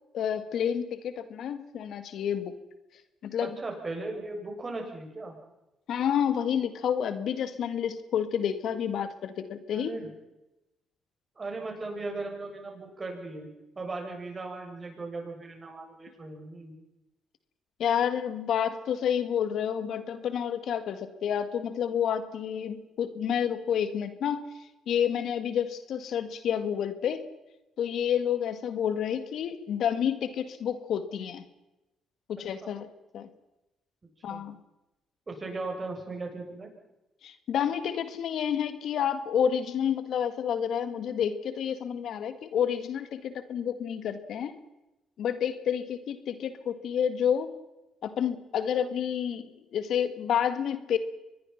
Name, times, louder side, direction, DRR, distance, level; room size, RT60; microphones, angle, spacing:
voice 1, 0.1-2.5 3.2-3.6 5.9-9.9 17.8-24.4 24.9-27.2 27.8-31.4 32.3-32.9 33.1-33.3 34.2-34.6 37.2-44.5 45.2-47.5 48.0-51.0, left 8 dB, 70° left, 11 dB, 1.9 m, -29 dB
voice 2, 3.4-5.3 9.7-10.1 11.4-13.5 13.7-16.7 32.6-32.7 34.3-34.4 35.3-36.7, right 3 dB, 30° right, 2 dB, 7.9 m, -37 dB
25.0 x 21.0 x 5.9 m, 0.95 s
supercardioid pair, 70°, 0 cm